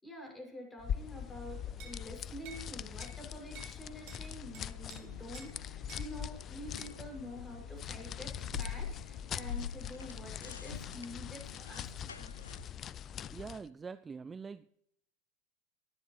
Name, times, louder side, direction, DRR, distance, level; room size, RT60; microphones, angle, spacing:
voice 1, 0.0-12.3, equal, 10° left, 1 dB, 6.9 m, -48 dB
sound 1, 0.8-13.7, left 9 dB, 35° left, 0.5 m, -42 dB
sound 2, 1.8-2.0 2.4-2.7 3.0-3.2 3.5-3.8 4.1-4.2 4.5-5.0 5.3-5.5 5.9-6.1 6.8-6.9 8.6-8.8, right 6 dB, 55° right, 3.6 m, -51 dB
sound 3, 4.4-12.7, left 6 dB, 85° left, 0.6 m, -47 dB
voice 2, 13.3-14.8, right 5 dB, 20° right, 14 dB, 0.5 m, -44 dB
24.0 x 9.9 x 3.3 m, 0.74 s
figure-of-eight pair, 85°, 0 cm